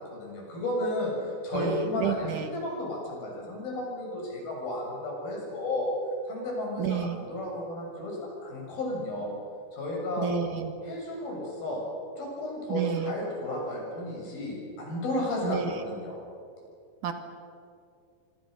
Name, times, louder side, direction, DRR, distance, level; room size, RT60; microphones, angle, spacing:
voice 1, 0.0-5.9 6.3-9.3 9.7-10.3 10.8-11.8 12.2-16.2, left 1 dB, 75° left, -1 dB, 8.7 m, -33 dB
voice 2, 1.5-2.5 6.8-7.2 10.2-10.7 12.7-13.1 15.4-15.9 17.0-17.1, right 7 dB, 60° right, 6 dB, 2.9 m, -30 dB
26.5 x 25.5 x 6.6 m, 2.4 s
omnidirectional pair, 4.2 m